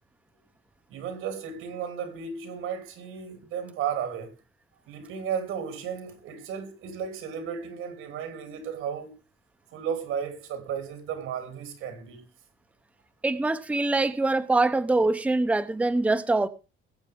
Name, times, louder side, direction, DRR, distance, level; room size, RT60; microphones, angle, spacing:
voice 1, 0.9-4.4 4.9-9.1 9.7-12.2, right 7 dB, 85° right, 3.2 m, -34 dB
voice 2, 13.2-16.5, right 2 dB, 5° right, 0.7 m, -24 dB
21.0 x 8.1 x 3.6 m
cardioid pair, 155°, 21 cm